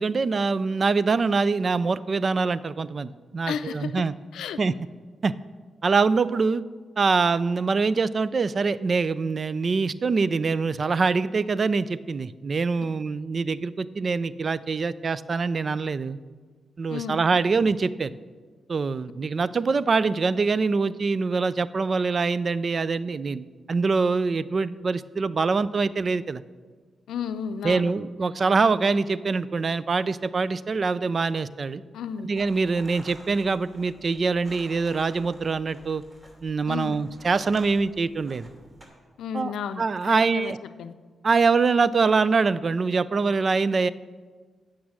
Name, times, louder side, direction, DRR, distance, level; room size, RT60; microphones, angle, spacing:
voice 1, 0.0-4.1 4.6-4.7 5.2-5.3 5.8-6.6 7.0-16.2 16.8-18.1 18.7-26.4 27.6-31.8 32.2-36.0 36.4-38.5 39.3-40.6 41.2-43.9, right 4 dB, 50° right, 17 dB, 0.4 m, -24 dB
voice 2, 3.5-4.0 4.3-4.7 16.9-17.2 27.1-27.9 31.9-32.3 36.7-37.0 39.2-40.5 40.8-40.9, left 7 dB, 80° left, 11 dB, 0.5 m, -33 dB
sound 1, 32.3-38.9, equal, 35° right, 2.9 m, -50 dB
8.6 x 6.2 x 8.2 m, 1.5 s
supercardioid pair, 45°, 0 cm